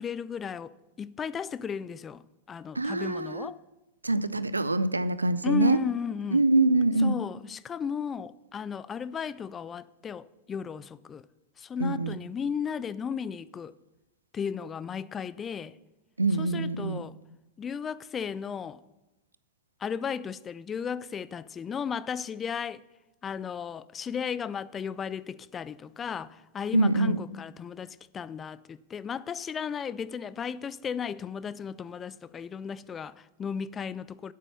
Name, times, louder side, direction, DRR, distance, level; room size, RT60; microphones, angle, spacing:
voice 1, 0.0-2.2 2.5-3.6 5.4-6.4 7.0-11.3 11.6-13.7 14.3-15.8 16.4-17.1 17.6-18.8 19.8-22.8 23.2-34.3, left 7 dB, 20° left, 0.3 m, -35 dB
voice 2, 2.7-3.5 4.0-5.8 6.3-7.2 11.8-12.1 16.2-17.0 26.7-27.2, right 2 dB, 80° right, 0.4 m, -24 dB
8.4 x 8.2 x 7.4 m
figure-of-eight pair, 90°, 0 cm